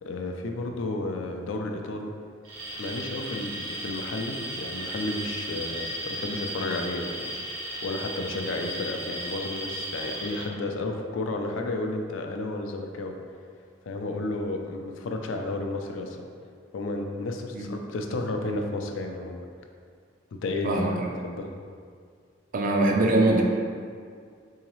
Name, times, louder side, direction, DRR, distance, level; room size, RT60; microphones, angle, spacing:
voice 1, 0.0-2.1 2.8-7.3 7.8-13.1 13.8-16.2 16.7-19.4 20.4-21.5, left 2 dB, 75° left, 3 dB, 0.4 m, -32 dB
Alarm, 2.4-10.5, right 1 dB, 85° right, 1.0 m, -35 dB
voice 2, 20.6-21.1 22.5-23.4, right 2 dB, 45° right, 1 dB, 0.4 m, -22 dB
3.8 x 2.7 x 3.0 m, 2.1 s
head